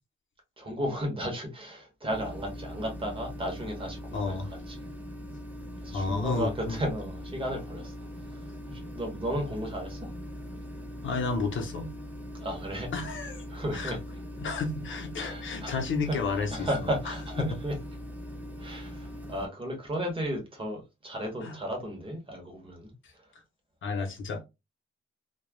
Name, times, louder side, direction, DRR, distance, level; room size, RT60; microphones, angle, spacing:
voice 1, 0.6-4.8 5.8-10.1 12.3-12.9 13.5-14.0 15.2-15.8 16.1-17.7 18.6-22.9, equal, 25° right, 0.9 m, -34 dB
sound 1, 2.1-19.5, equal, 5° right, 0.5 m, -41 dB
voice 2, 4.1-4.5 5.9-6.8 11.0-11.9 12.9-13.4 13.7-13.9 14.4-17.5 21.4-21.6 23.8-24.5, left 4 dB, 65° left, 0.8 m, -32 dB
3.1 x 2.3 x 2.2 m
wide cardioid pair, 155°, 21 cm